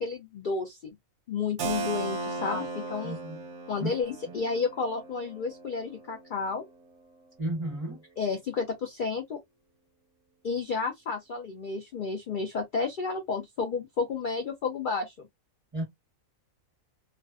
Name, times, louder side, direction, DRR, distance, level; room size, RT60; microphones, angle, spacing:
voice 1, 0.0-1.0 1.3-2.6 2.9-3.2 3.7-6.6 8.2-9.4 10.4-15.1, left 4 dB, 75° left, 0.4 m, -31 dB
Keyboard (musical), 1.6-7.1, right 3 dB, 65° right, 0.8 m, -37 dB
voice 2, 3.0-3.4 3.8-3.9 4.3-4.4 7.4-8.0 15.7-15.8, right 1 dB, 30° right, 0.7 m, -33 dB
2.4 x 2.1 x 2.3 m
omnidirectional pair, 1.4 m